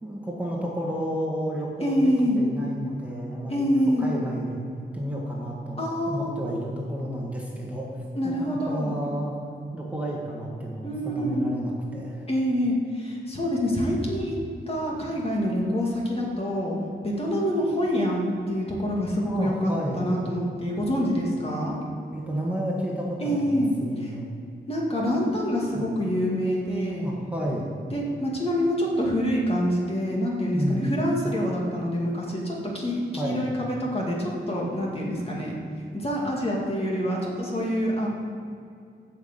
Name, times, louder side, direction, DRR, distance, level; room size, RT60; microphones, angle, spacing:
voice 1, 0.0-3.7 4.0-7.9 8.2-9.3 9.7-12.2 19.2-20.1 22.1-24.3 25.1-25.2 25.7-25.9 27.0-27.8 30.5-31.0 33.2-33.5, equal, 5° right, -4 dB, 1.7 m, -31 dB
voice 2, 1.8-2.4 3.5-4.1 5.8-6.3 8.2-8.9 10.8-11.5 12.3-14.4 14.7-16.8 17.0-21.8 23.2-23.7 24.0-24.1 24.7-27.1 27.9-35.6 35.9-38.1, equal, 30° left, -3 dB, 2.2 m, -26 dB
13.0 x 5.9 x 8.2 m, 2.4 s
wide cardioid pair, 145°, 19 cm